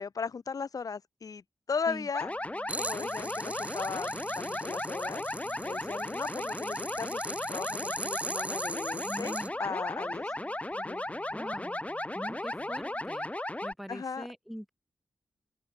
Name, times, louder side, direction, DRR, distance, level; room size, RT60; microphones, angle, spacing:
voice 1, 0.0-1.4 1.7-2.3 2.7-4.1 4.3-10.3 10.8-11.0 13.9-14.3, left 5 dB, 60° left, 0.7 m, -37 dB
sound 1, 2.1-13.7, left 1 dB, 20° left, 1.2 m, -35 dB
sound 2, 2.2-13.1, right 6 dB, 80° right, 3.4 m, -57 dB
sound 3, 2.7-9.5, right 2 dB, 20° right, 0.5 m, -40 dB
voice 2, 9.0-9.5 11.3-11.9 12.1-13.3 13.6-14.7, equal, ahead, 6.9 m, -42 dB
open air
cardioid pair, 45°, 7 cm